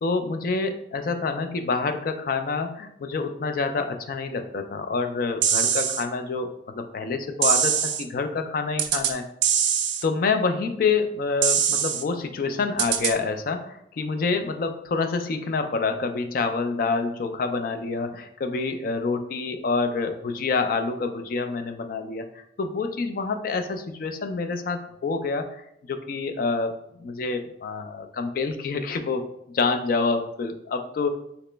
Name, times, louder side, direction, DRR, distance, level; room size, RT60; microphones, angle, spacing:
voice 1, 0.0-9.2 10.0-25.6 25.9-29.2 29.5-31.2, left 4 dB, 50° left, 7 dB, 0.3 m, -27 dB
sound 1, 5.4-6.0 7.4-8.0 8.8-9.1 9.4-10.0 11.4-12.0 12.8-13.1, right 8 dB, 75° right, 0.3 m, -22 dB
2.9 x 2.9 x 3.2 m, 0.76 s
head